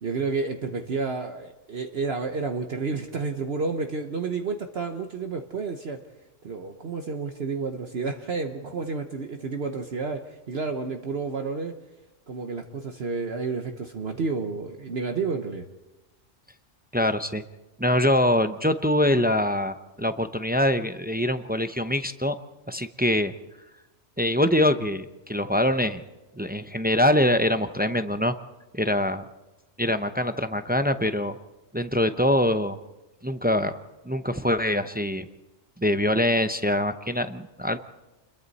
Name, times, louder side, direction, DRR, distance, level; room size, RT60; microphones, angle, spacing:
voice 1, 0.0-6.0 6.4-11.7 12.3-15.6, right 4 dB, 55° right, 5 dB, 1.2 m, -30 dB
voice 2, 16.9-17.4 17.8-22.4 22.7-23.3 24.2-26.0 26.4-28.3 28.7-29.2 29.8-31.4 31.7-32.8 33.2-33.7 34.0-35.3 35.8-37.8, left 1 dB, 10° right, 9 dB, 0.4 m, -24 dB
29.0 x 22.0 x 4.2 m, 1.1 s
omnidirectional pair, 1.3 m